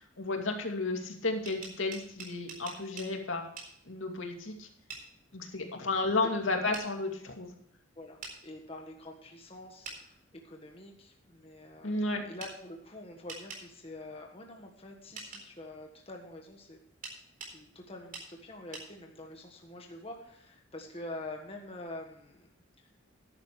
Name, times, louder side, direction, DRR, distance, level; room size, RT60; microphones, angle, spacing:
voice 1, 0.0-3.4 3.9-4.7 5.3-7.5 11.8-12.2, left 3 dB, 75° left, 3 dB, 2.4 m, -32 dB
sound 1, 1.3-3.1 3.6-3.7 4.9-5.1 6.7-6.9 8.2-8.4 9.8-10.0 12.4-12.5 13.3-13.6 15.2-15.4 17.0-17.6 18.1-18.3 18.7-18.9, right 4 dB, 45° right, 4.0 m, -43 dB
voice 2, 8.0-10.1 10.4-11.9 12.2-16.8 17.4-22.5 22.8-22.9, left 2 dB, 30° left, 2 dB, 1.5 m, -46 dB
14.0 x 11.0 x 3.2 m, 0.67 s
head